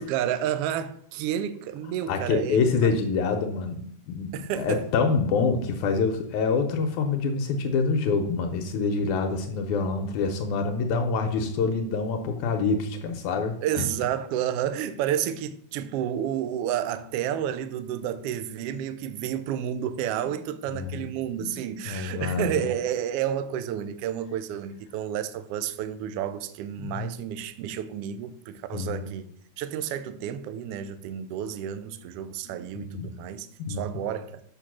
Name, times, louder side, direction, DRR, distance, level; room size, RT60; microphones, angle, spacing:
voice 1, 0.0-2.9 4.3-4.9 13.6-29.2 29.6-34.4, right 10 dB, 85° right, 1.3 m, -30 dB
voice 2, 2.1-13.8 20.7-21.1 21.4-21.6 21.9-22.7 26.8-27.1 28.7-29.1 32.5-33.1 33.6-33.8, left 4 dB, 80° left, 2.1 m, -26 dB
6.4 x 5.8 x 6.1 m
omnidirectional pair, 3.4 m